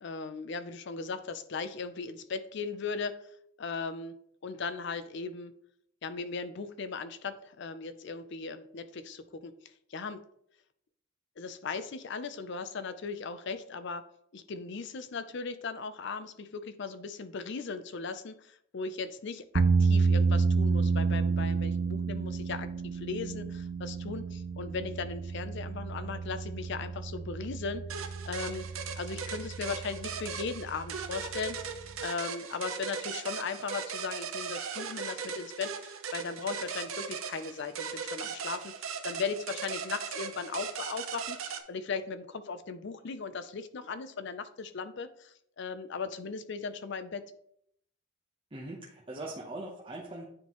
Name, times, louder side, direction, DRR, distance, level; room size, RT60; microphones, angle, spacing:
voice 1, 0.0-3.2 3.6-4.1 4.4-5.5 6.0-9.5 9.9-10.2 11.4-14.0 14.3-28.7 29.0-31.6 32.0-47.3, left 4 dB, 55° left, 11 dB, 0.5 m, -38 dB
sound 1, 19.5-32.1, right 4 dB, 40° right, 0.4 m, -30 dB
sound 2, 27.9-41.6, right 6 dB, 80° right, 0.7 m, -38 dB
voice 2, 48.5-50.3, right 2 dB, 25° right, -3 dB, 0.8 m, -41 dB
9.6 x 3.7 x 3.0 m, 0.69 s
head